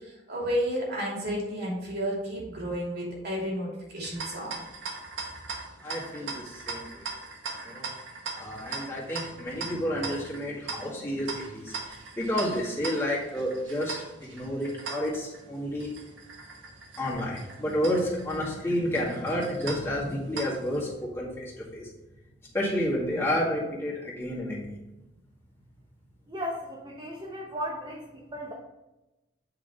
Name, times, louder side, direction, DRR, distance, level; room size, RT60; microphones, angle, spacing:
voice 1, 0.3-4.5, equal, 60° right, -3 dB, 2.7 m, -31 dB
sound 1, 4.0-20.8, right 4 dB, 80° right, 1.3 m, -40 dB
voice 2, 5.8-7.0 7.6-7.9 8.4-13.9 14.2-15.9 17.0-21.9 22.5-24.7, equal, 15° left, -6 dB, 1.9 m, -30 dB
voice 3, 26.3-28.5, equal, 25° right, -3 dB, 1.0 m, -36 dB
8.3 x 5.0 x 3.5 m, 1.0 s
head